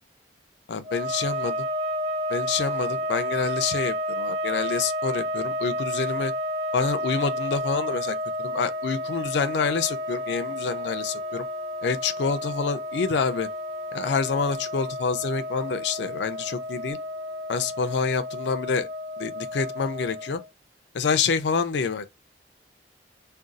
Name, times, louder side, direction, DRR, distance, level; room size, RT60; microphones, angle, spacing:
voice 1, 0.7-1.7 2.3-6.3 6.7-11.5 11.8-13.5 13.9-17.0 17.5-18.9 19.2-20.4 20.9-22.0, left 5 dB, 80° left, 0.4 m, -27 dB
sound 1, 0.8-20.5, equal, 35° right, 0.5 m, -31 dB
2.5 x 2.3 x 3.8 m
head